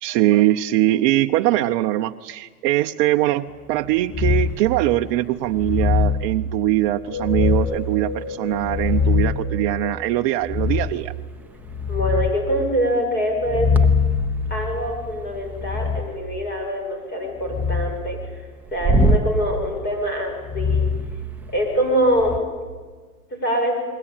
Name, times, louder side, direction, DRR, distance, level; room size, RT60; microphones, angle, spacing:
voice 1, 0.0-11.1, right 15 dB, 35° right, 5 dB, 0.8 m, -21 dB
sound 1, 4.1-4.7 5.5-6.2 7.2-7.9 8.5-9.5 10.4-11.0 11.5-12.4 13.4-16.1 17.4-17.9 18.8-19.3 20.4-21.7 22.1-22.4, left 3 dB, 5° right, 1.1 m, -22 dB
sound 2, 6.9-11.5, left 5 dB, 50° left, 3.9 m, -34 dB
voice 2, 11.9-13.7 14.5-20.9 21.5-22.4 23.4-23.8, equal, 20° left, 3 dB, 7.4 m, -24 dB
29.0 x 22.0 x 9.0 m, 1.5 s
hypercardioid pair, 130°, 47 cm